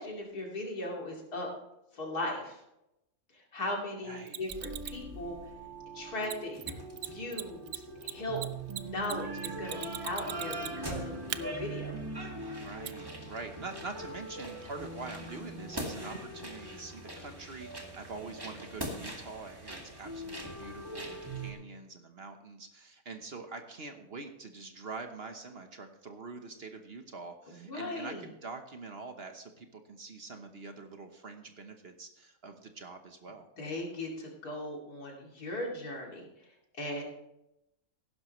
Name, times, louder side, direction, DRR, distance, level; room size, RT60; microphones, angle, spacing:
voice 1, 0.0-1.5 1.9-2.6 3.3-5.4 5.9-6.6 7.1-8.4 8.8-11.9 27.5-28.2 33.6-36.3 36.8-37.0, left 1 dB, 85° left, -1 dB, 3.1 m, -38 dB
voice 2, 4.0-4.4 12.6-33.5, right 4 dB, 45° right, 6 dB, 1.2 m, -45 dB
Mechanisms, 4.3-5.0 6.2-6.3 6.6-6.7 7.0-7.1 7.3-10.9 11.3-11.4 12.8-12.9, right 12 dB, 70° right, 0.9 m, -38 dB
sound 1, 4.5-21.5, right 1 dB, 15° right, 1.9 m, -41 dB
sound 2, 5.0-12.4, right 7 dB, 60° left, 5.8 m, -51 dB
15.5 x 12.0 x 3.2 m, 0.87 s
omnidirectional pair, 1.6 m